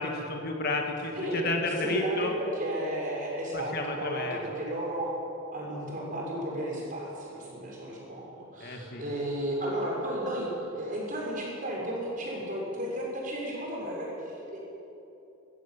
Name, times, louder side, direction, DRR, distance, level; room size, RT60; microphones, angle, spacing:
voice 1, 0.0-2.3 3.5-4.6 8.6-9.0, left 2 dB, 50° left, 2 dB, 2.2 m, -32 dB
voice 2, 1.8-5.1 5.5-8.3 8.5-10.5 10.7-14.6, right 1 dB, 40° right, -3 dB, 6.3 m, -33 dB
20.0 x 15.5 x 9.0 m, 2.9 s
head